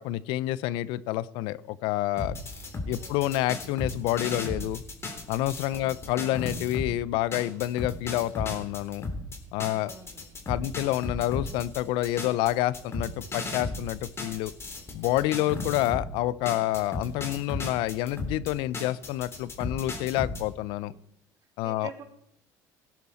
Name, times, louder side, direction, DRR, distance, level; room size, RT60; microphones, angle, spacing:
voice 1, 0.0-2.4 2.9-4.8 5.3-9.0 9.5-9.9 10.5-14.5 14.9-20.9 21.6-21.9, left 15 dB, 75° left, 19 dB, 0.5 m, -28 dB
sound 1, 2.2-6.9 7.3-16.1 16.5-20.4, left 2 dB, 30° left, 3.5 m, -35 dB
voice 2, 2.9-3.3 5.7-6.0 9.8-10.3 15.7-15.9 20.8-21.0 21.6-22.0, right 6 dB, 50° right, 3 dB, 3.2 m, -46 dB
18.0 x 10.5 x 4.2 m, 0.77 s
supercardioid pair, 85°, 8 cm